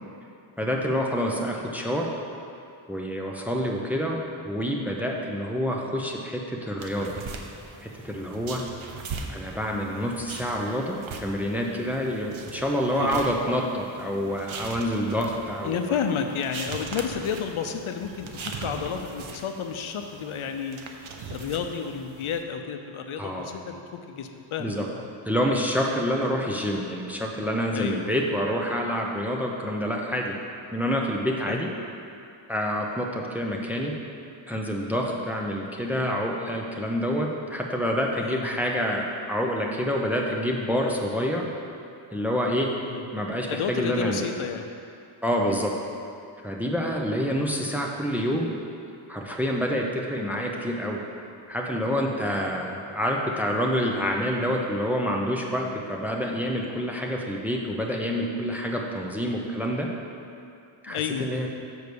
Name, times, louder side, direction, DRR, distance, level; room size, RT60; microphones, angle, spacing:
voice 1, 0.6-2.1 2.9-4.2 4.4-7.1 7.8-8.6 9.3-15.9 23.2-23.5 24.6-24.9 25.2-30.4 30.7-31.7 32.5-33.9 34.5-41.5 42.1-42.7 43.1-44.3 45.2-45.7 46.4-48.5 49.1-51.0 51.5-59.9 60.8-61.5, equal, 5° right, -1 dB, 0.6 m, -27 dB
sound 1, 6.8-22.4, right 4 dB, 70° right, 0.8 m, -40 dB
voice 2, 15.6-20.8 21.3-25.1 27.7-28.0 31.5-31.6 38.2-38.5 42.8-43.0 43.5-44.7 60.9-61.5, left 7 dB, 75° left, 5 dB, 0.7 m, -31 dB
6.8 x 4.7 x 6.8 m, 2.5 s
wide cardioid pair, 135°, 50 cm